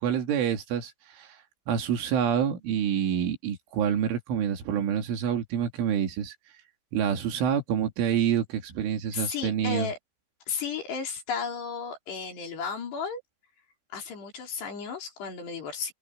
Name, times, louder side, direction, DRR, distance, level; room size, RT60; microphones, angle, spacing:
voice 1, 0.0-1.4 1.7-6.4 6.9-9.9, right 8 dB, 90° right, 5.3 m, -27 dB
voice 2, 9.1-10.0 10.5-13.2 13.9-15.9, left 6 dB, 60° left, 6.3 m, -34 dB
omnidirectional pair, 5.4 m